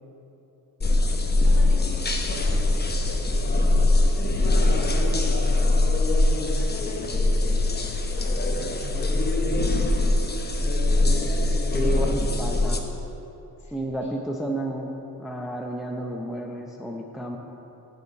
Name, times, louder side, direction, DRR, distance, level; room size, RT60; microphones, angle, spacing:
sound 1, 0.8-12.8, left 2 dB, 25° left, 0.9 m, -22 dB
voice 1, 1.4-3.7 4.2-5.4 6.5-9.5 11.7-12.4 13.6-14.1, left 1 dB, 45° left, -3 dB, 2.1 m, -43 dB
voice 2, 11.7-12.8 13.7-14.9 15.2-17.4, right 1 dB, ahead, 0 dB, 0.6 m, -31 dB
6.7 x 6.6 x 7.0 m, 3.0 s
cardioid pair, 85°, 40 cm